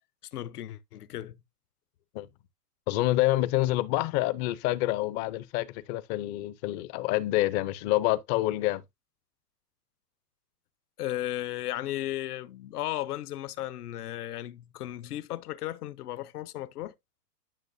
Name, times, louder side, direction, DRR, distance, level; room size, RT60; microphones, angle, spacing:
voice 1, 0.3-1.4 11.0-16.9, left 14 dB, 65° left, 0.9 m, -35 dB
voice 2, 2.9-8.8, left 16 dB, 25° left, 0.6 m, -27 dB
10.5 x 6.0 x 2.6 m
hypercardioid pair, 130°, 48 cm